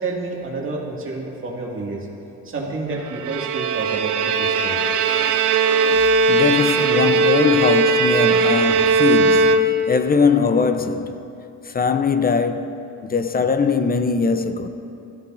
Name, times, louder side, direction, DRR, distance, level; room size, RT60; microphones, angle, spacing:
voice 1, 0.0-2.1 2.4-4.9, right 3 dB, 45° right, 2.2 m, -29 dB
Bowed string instrument, 3.1-10.0, right 3 dB, 80° right, 0.7 m, -18 dB
voice 2, 6.3-11.2 11.7-14.7, left 5 dB, 30° left, 0.7 m, -21 dB
16.5 x 13.5 x 2.6 m
cardioid pair, 90°, 30 cm